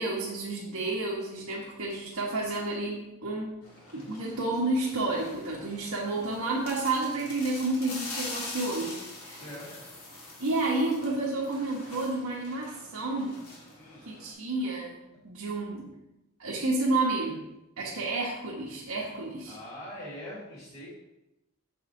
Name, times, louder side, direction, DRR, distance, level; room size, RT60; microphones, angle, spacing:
voice 1, 0.0-3.6 3.9-9.4 10.4-13.4 14.1-14.9 15.2-15.9 16.4-17.4 17.8-19.5, right 2 dB, 90° right, -5 dB, 1.4 m, -30 dB
sound 1, 3.6-14.3, left 2 dB, 70° left, 2.3 m, -44 dB
voice 2, 9.3-9.8 13.7-14.1 15.1-15.2 19.5-20.9, equal, 25° left, -10 dB, 2.6 m, -43 dB
7.0 x 5.6 x 3.9 m, 0.95 s
head